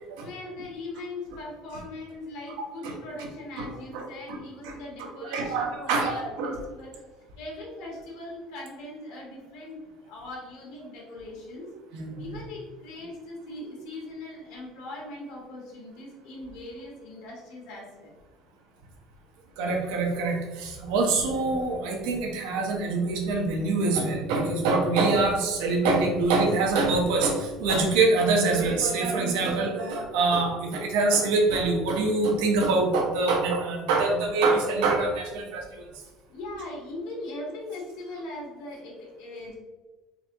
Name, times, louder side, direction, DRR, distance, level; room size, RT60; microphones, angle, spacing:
voice 1, 0.2-6.9 7.4-11.7 12.2-18.1 36.3-39.6, left 2 dB, 70° left, -4 dB, 1.5 m, -40 dB
voice 2, 3.9-4.4 4.6-4.7 5.2-6.5 11.9-12.4 19.6-35.8, right 3 dB, 85° right, 1 dB, 0.9 m, -25 dB
3.9 x 3.5 x 2.9 m, 1.2 s
cardioid pair, 175°, 0 cm